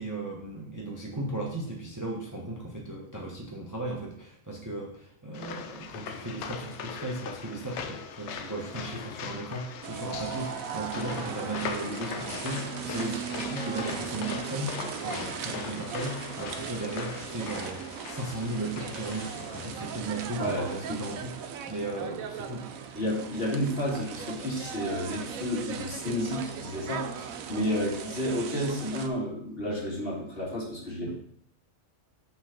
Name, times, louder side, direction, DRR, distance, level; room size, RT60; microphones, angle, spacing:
voice 1, 0.0-22.7, right 2 dB, 15° right, -2 dB, 0.9 m, -36 dB
sound 1, 5.3-20.0, left 7 dB, 65° left, 0.8 m, -40 dB
sound 2, 9.8-29.1, right 7 dB, 80° right, 1.1 m, -38 dB
voice 2, 20.4-21.0 22.9-31.1, equal, 45° left, -4 dB, 2.0 m, -31 dB
5.6 x 4.0 x 5.7 m, 0.67 s
omnidirectional pair, 1.4 m